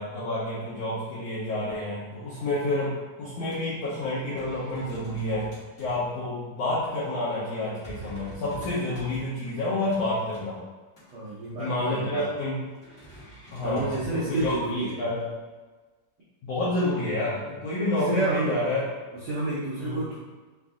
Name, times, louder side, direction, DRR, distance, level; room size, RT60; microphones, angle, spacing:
voice 1, 0.0-5.5 5.8-10.6 11.6-12.6 13.5-15.2 16.4-18.8 19.8-20.1, left 2 dB, 70° left, -10 dB, 1.6 m, -29 dB
sound 1, 3.3-3.6 3.9-4.0 4.3-6.1 6.6-6.7 7.4-10.4 11.0-11.5 12.8-15.2, right 2 dB, 50° left, 0.9 m, -46 dB
voice 2, 11.1-12.3 13.6-14.9 17.9-18.5 19.3-20.2, right 2 dB, 85° right, -8 dB, 1.4 m, -29 dB
5.4 x 2.6 x 3.6 m, 1.3 s
omnidirectional pair, 4.0 m